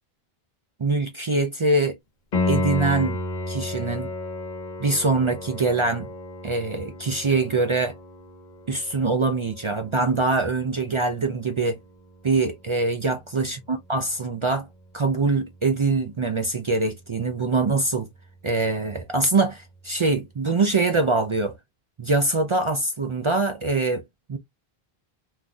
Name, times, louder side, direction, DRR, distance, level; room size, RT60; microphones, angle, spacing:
voice 1, 0.8-2.0 2.5-3.2 3.5-4.1 4.8-6.1 6.4-7.9 8.7-11.8 12.2-14.7 14.9-18.1 18.4-21.5 22.0-24.0 24.3-24.4, right 3 dB, 45° right, 0.4 m, -23 dB
Piano, 2.3-13.0 16.3-16.4, left 2 dB, 50° left, 0.9 m, -33 dB
3.8 x 2.6 x 2.2 m
omnidirectional pair, 1.0 m